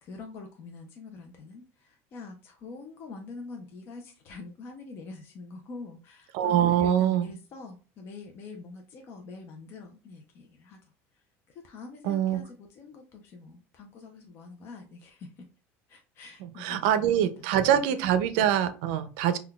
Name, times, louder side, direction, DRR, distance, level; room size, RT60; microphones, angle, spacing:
voice 1, 0.0-10.8 11.5-15.4 15.9-17.8, left 4 dB, 35° left, 3 dB, 0.5 m, -45 dB
voice 2, 6.3-7.3 12.0-12.4 16.4-19.4, right 10 dB, 75° right, 11 dB, 0.4 m, -24 dB
5.6 x 2.2 x 2.3 m, 0.36 s
cardioid pair, 170°, 7 cm